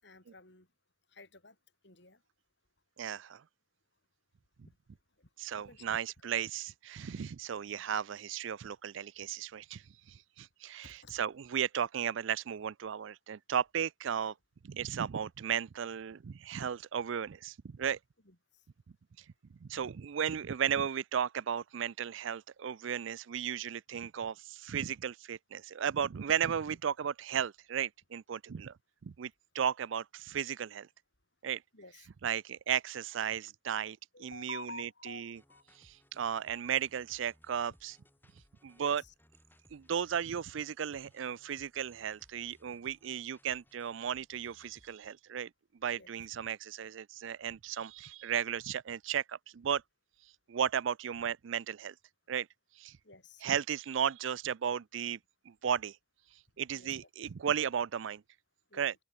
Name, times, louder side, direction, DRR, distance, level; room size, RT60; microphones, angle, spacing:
voice 1, 0.0-0.7 1.1-1.6 1.8-2.2 4.6-4.8 5.2-6.0 10.8-11.2 18.3-18.7 31.7-32.1 34.1-35.8 38.8-39.1 46.0-46.1 53.0-53.4 56.7-57.0 58.7-58.9, left 3 dB, 55° left, 5.2 m, -51 dB
voice 2, 3.0-3.4 5.4-9.8 10.1-14.3 14.6-18.0 19.6-28.7 29.0-30.9 31.4-31.6 32.2-35.4 35.8-38.0 38.6-39.0 39.7-45.5 45.8-49.8 50.5-51.9 52.3-52.5 52.8-53.0 53.4-55.2 55.5-56.0 56.6-58.2 58.7-58.9, right 8 dB, 70° right, 0.4 m, -35 dB
sound 1, 35.3-45.0, left 1 dB, 10° left, 2.7 m, -66 dB
open air
head